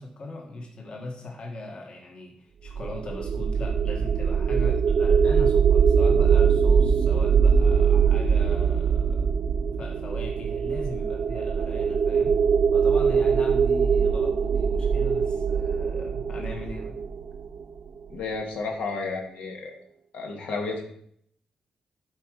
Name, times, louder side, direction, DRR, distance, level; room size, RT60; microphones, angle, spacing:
voice 1, 0.0-9.3 9.8-12.4 12.7-17.0, left 2 dB, 45° left, 1 dB, 1.8 m, -39 dB
sound 1, 2.7-17.8, right 6 dB, 65° right, 0.6 m, -22 dB
voice 2, 18.1-19.7 20.1-20.8, left 4 dB, 85° left, 1 dB, 2.0 m, -32 dB
11.5 x 4.9 x 5.0 m, 0.67 s
cardioid pair, 115°, 2 cm